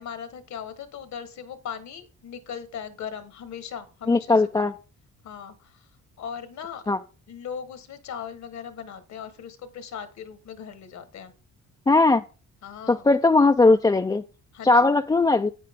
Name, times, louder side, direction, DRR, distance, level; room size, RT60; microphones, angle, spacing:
voice 1, 0.0-4.7 5.2-5.8 6.2-6.8 7.3-11.3 12.6-13.0 14.5-14.9, left 7 dB, 65° left, 1.4 m, -38 dB
voice 2, 4.1-4.7 6.9-7.0 11.9-12.2 12.9-14.2 14.6-15.5, left 3 dB, 15° left, 0.4 m, -19 dB
9.2 x 8.4 x 3.6 m
cardioid pair, 90°, 30 cm